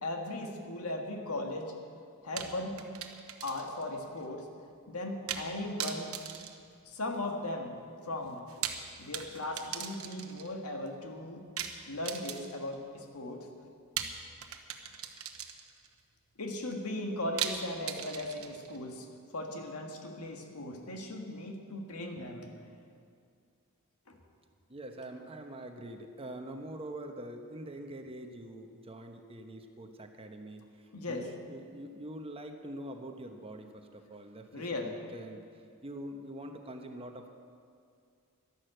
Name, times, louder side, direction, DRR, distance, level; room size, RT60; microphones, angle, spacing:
voice 1, 0.0-1.7 2.2-2.8 3.4-4.5 4.9-6.1 6.9-7.8 8.0-8.4 9.0-11.4 11.9-13.5 16.4-19.1 19.3-22.5 24.1-24.2 30.9-31.3 34.5-34.9, left 1 dB, 80° left, 3 dB, 1.8 m, -37 dB
sound 1, 2.4-3.9 4.2-4.3 5.3-5.5 5.8-7.3 8.4-10.5 11.6-12.7 14.0-15.9 17.4-18.8, right 9 dB, 70° right, 1.1 m, -39 dB
voice 2, 24.7-30.6 31.1-35.4 35.8-37.3, right 1 dB, 25° right, 5 dB, 1.0 m, -44 dB
12.0 x 11.5 x 7.9 m, 2.3 s
head